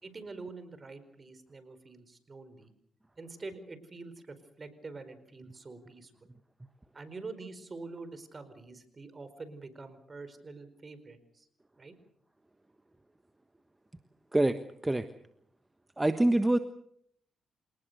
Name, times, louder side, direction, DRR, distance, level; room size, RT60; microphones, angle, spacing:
voice 1, 0.0-2.7 3.2-6.3 6.9-11.5 11.8-11.9, right 3 dB, 40° right, 12 dB, 4.7 m, -46 dB
voice 2, 16.0-16.6, right 1 dB, 15° right, 9 dB, 1.3 m, -25 dB
27.5 x 19.0 x 6.8 m, 0.69 s
cardioid pair, 65°, 0 cm